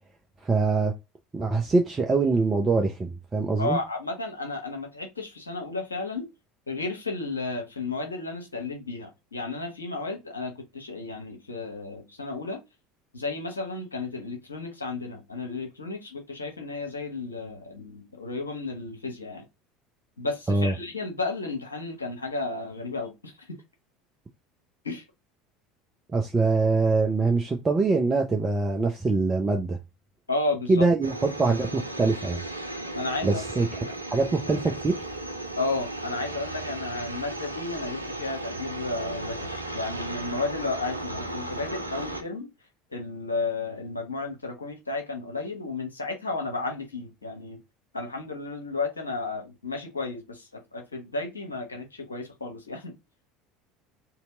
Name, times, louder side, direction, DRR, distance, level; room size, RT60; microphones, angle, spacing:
voice 1, 0.4-0.9 1.3-3.8 20.5-20.7 26.1-29.8 30.7-32.4 33.2-33.7 34.1-35.0, right 3 dB, 20° right, 0.7 m, -23 dB
voice 2, 3.6-6.3 6.7-12.6 13.1-19.4 20.2-23.5 24.8-25.0 30.3-30.9 32.9-33.4 35.6-42.5 42.9-47.6 47.9-52.9, left 3 dB, 80° left, 1.1 m, -33 dB
sound 1, 31.0-42.2, right 1 dB, 85° right, 0.5 m, -35 dB
3.3 x 3.0 x 3.8 m
figure-of-eight pair, 70°, 0 cm